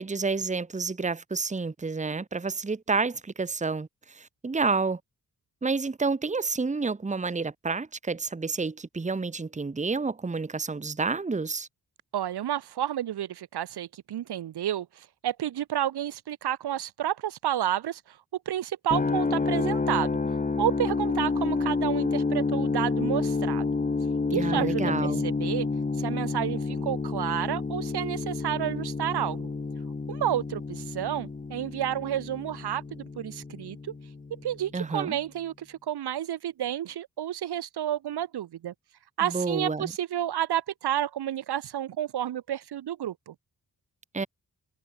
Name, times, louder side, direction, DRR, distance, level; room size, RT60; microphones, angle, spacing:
voice 1, 0.0-5.0 5.6-11.7 24.3-25.2 34.7-35.2 39.2-39.9 44.1-44.3, right 4 dB, 20° right, 1.0 m, -29 dB
voice 2, 12.1-18.2 18.5-20.1 20.6-23.6 24.3-25.7 26.0-29.5 30.1-33.9 34.4-38.7 39.2-43.3, right 11 dB, 75° right, 1.1 m, -30 dB
sound 1, 18.9-34.8, left 4 dB, 20° left, 0.9 m, -29 dB
supercardioid pair, 45°, 40 cm